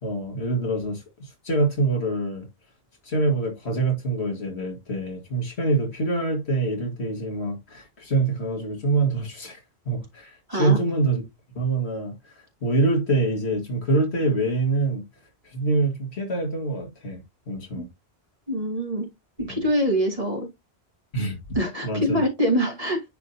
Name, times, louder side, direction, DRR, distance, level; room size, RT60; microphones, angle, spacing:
voice 1, 0.0-1.0 1.4-2.5 3.1-9.6 9.9-11.2 11.6-12.1 12.6-15.0 15.5-17.9 19.5-19.6 21.1-21.4 21.8-22.2, right 2 dB, 80° left, 2.2 m, -25 dB
voice 2, 18.5-19.1 19.5-20.5 21.5-23.1, equal, 35° right, 2.3 m, -24 dB
9.7 x 3.7 x 2.7 m
omnidirectional pair, 1.1 m